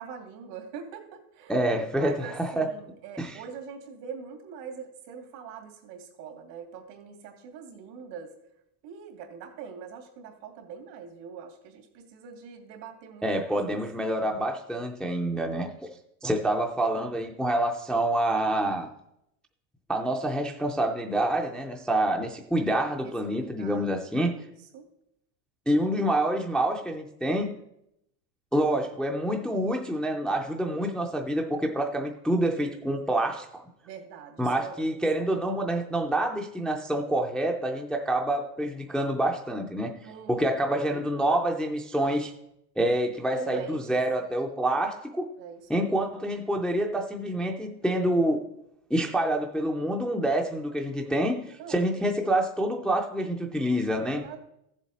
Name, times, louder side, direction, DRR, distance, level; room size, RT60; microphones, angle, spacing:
voice 1, 0.0-1.6 2.0-8.3 8.8-13.2 13.7-13.8 23.0-23.9 24.2-24.9 33.8-34.8 35.2-35.4 40.1-40.5 43.3-44.0 45.4-45.9 51.6-51.9 54.1-54.4, right 6 dB, 85° right, 4 dB, 2.5 m, -43 dB
voice 2, 1.5-2.7 3.2-3.4 13.2-15.7 16.2-18.9 19.9-24.3 25.7-27.5 28.5-33.6 34.4-42.3 42.8-45.3 45.7-48.4 48.9-54.2, right 1 dB, ahead, 2 dB, 0.3 m, -27 dB
14.5 x 7.3 x 4.1 m, 0.79 s
supercardioid pair, 140°, 48 cm